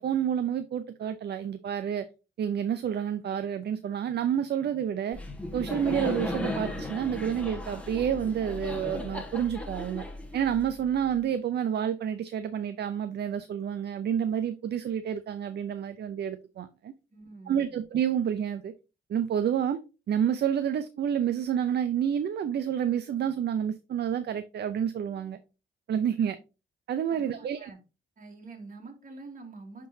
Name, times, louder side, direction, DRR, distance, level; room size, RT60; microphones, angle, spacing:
voice 1, 0.0-2.1 2.4-5.2 5.5-10.0 10.3-16.9 17.5-18.7 19.1-19.8 20.1-25.4 25.9-26.4 26.9-27.6, right 9 dB, 60° right, 0.5 m, -29 dB
Laughter, 5.1-11.0, left 1 dB, 5° left, 1.4 m, -36 dB
voice 2, 17.1-17.8 27.1-27.8 28.2-29.9, right 3 dB, 45° right, 2.3 m, -46 dB
9.9 x 3.8 x 2.7 m
cardioid pair, 80°, 19 cm